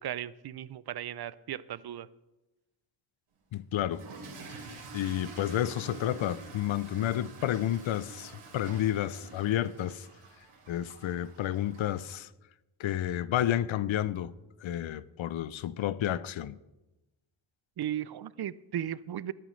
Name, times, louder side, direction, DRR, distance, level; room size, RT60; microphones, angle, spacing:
voice 1, 0.0-2.1 17.8-19.3, right 11 dB, 55° right, 0.5 m, -36 dB
voice 2, 3.5-4.0 4.9-10.1 10.7-12.3 12.8-14.3 14.6-16.6, left 12 dB, 70° left, 0.6 m, -31 dB
Toilet flush / Fill (with liquid), 3.8-12.1, right 3 dB, 90° right, 3.0 m, -48 dB
20.0 x 9.2 x 3.2 m
cardioid pair, 95°, 49 cm